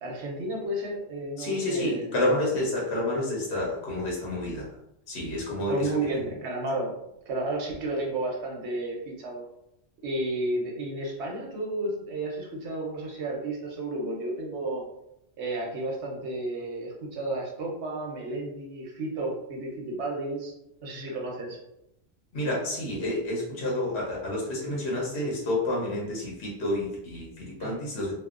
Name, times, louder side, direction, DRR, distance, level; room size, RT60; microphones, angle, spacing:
voice 1, 0.0-2.4 5.7-6.9 7.3-9.4 10.0-14.8 15.4-20.5 20.8-21.6 27.6-27.8, right 2 dB, 85° right, -1 dB, 1.0 m, -32 dB
voice 2, 1.4-4.7 5.1-5.9 22.3-28.1, left 1 dB, 75° left, -4 dB, 1.0 m, -29 dB
2.7 x 2.0 x 2.4 m, 0.83 s
omnidirectional pair, 1.1 m